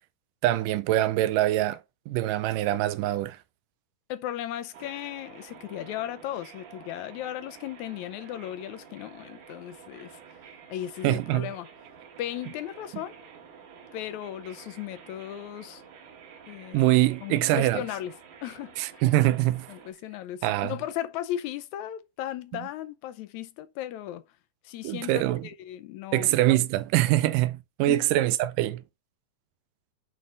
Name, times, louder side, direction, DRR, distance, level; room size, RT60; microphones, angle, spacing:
voice 1, 0.4-1.8 2.1-3.4 11.0-11.5 16.7-17.8 18.8-19.7 20.4-20.7 24.8-25.5 26.1-28.8, right 15 dB, 85° right, 2.2 m, -24 dB
voice 2, 4.1-10.2 10.7-11.7 12.2-13.1 13.9-15.8 16.5-16.9 17.2-18.1 18.4-19.0 19.7-24.2 24.6-26.3 27.9-28.1, left 12 dB, 75° left, 1.8 m, -36 dB
sound 1, 4.7-19.9, right 7 dB, 70° right, 2.9 m, -50 dB
9.3 x 3.8 x 3.9 m
omnidirectional pair, 3.8 m